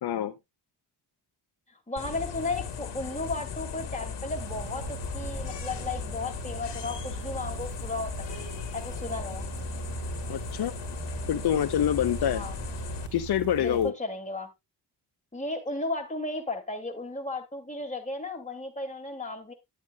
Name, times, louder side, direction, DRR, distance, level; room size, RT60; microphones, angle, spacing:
voice 1, 0.0-0.3 10.3-10.7 11.3-12.4 13.1-13.9, left 10 dB, 65° left, 0.7 m, -26 dB
voice 2, 1.9-8.4 8.7-9.5 12.3-12.5 13.6-14.5 15.3-19.5, left 2 dB, 20° left, 2.4 m, -34 dB
sound 1, 2.0-13.1, left 7 dB, 85° left, 1.7 m, -37 dB
sound 2, 4.3-13.9, right 11 dB, 45° right, 0.4 m, -40 dB
11.5 x 8.1 x 2.3 m
cardioid pair, 95°, 41 cm